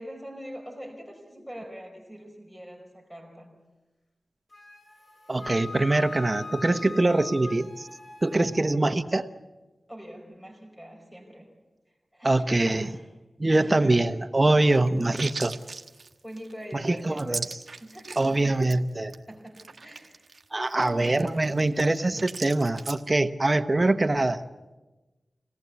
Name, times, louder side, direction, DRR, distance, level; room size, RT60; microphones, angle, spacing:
voice 1, 0.0-3.6 9.9-11.5 12.1-13.1 13.5-14.1 16.2-17.4 17.7-18.3 19.3-20.3 20.8-21.7, equal, 5° left, 2 dB, 4.6 m, -43 dB
Wind instrument woodwind instrument, 4.5-8.6, left 3 dB, 55° left, 3.5 m, -41 dB
voice 2, 5.3-7.9 8.2-9.3 12.2-12.9 13.4-15.6 16.7-17.6 18.2-19.1 20.5-24.4, right 2 dB, 30° right, 9 dB, 1.0 m, -23 dB
sound 1, 14.6-18.4 18.6-18.8 19.1-19.2 19.5-23.0, right 4 dB, 60° right, 1.3 m, -38 dB
26.0 x 18.0 x 8.3 m, 1.2 s
wide cardioid pair, 95°, 0 cm